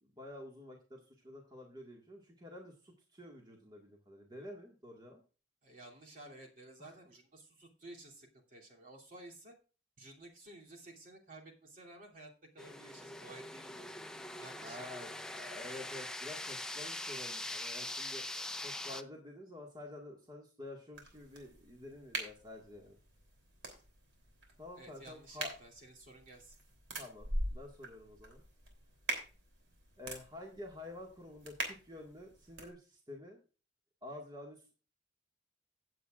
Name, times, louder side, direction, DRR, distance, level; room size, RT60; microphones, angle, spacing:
voice 1, 0.0-5.2 6.8-6.9 14.6-23.0 24.6-25.6 27.0-28.4 30.0-33.4 34.0-34.8, left 2 dB, 25° right, 0 dB, 1.8 m, -49 dB
voice 2, 5.6-9.5 10.0-14.0 14.4-15.4 24.7-26.6, right 1 dB, 50° right, -1 dB, 2.9 m, -54 dB
sound 1, 12.6-19.0, left 1 dB, 5° left, 0.6 m, -43 dB
sound 2, 20.9-32.7, right 1 dB, 80° right, 3.2 m, -44 dB
16.5 x 8.1 x 2.5 m, 0.34 s
head